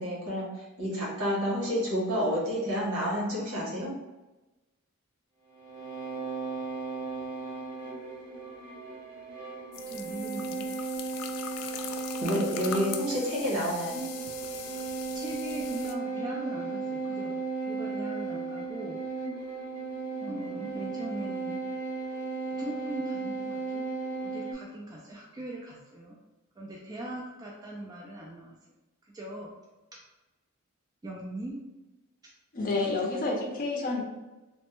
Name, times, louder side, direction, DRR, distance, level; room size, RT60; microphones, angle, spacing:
voice 1, 0.0-3.9 12.2-14.1, equal, 75° right, -5 dB, 1.1 m, -29 dB
sound 1, 5.5-24.5, right 4 dB, 45° right, 0.8 m, -35 dB
sound 2, 9.7-15.9, left 8 dB, 90° left, 0.3 m, -41 dB
voice 2, 9.9-10.7 12.4-12.6 15.1-19.0 20.2-21.6 22.6-23.9 24.2-26.2 26.6-28.5 29.1-29.5 31.0-31.6, right 1 dB, 15° right, -4 dB, 0.3 m, -40 dB
voice 3, 32.5-34.0, left 3 dB, 40° left, 0 dB, 0.5 m, -29 dB
3.1 x 2.1 x 3.0 m, 1.1 s
head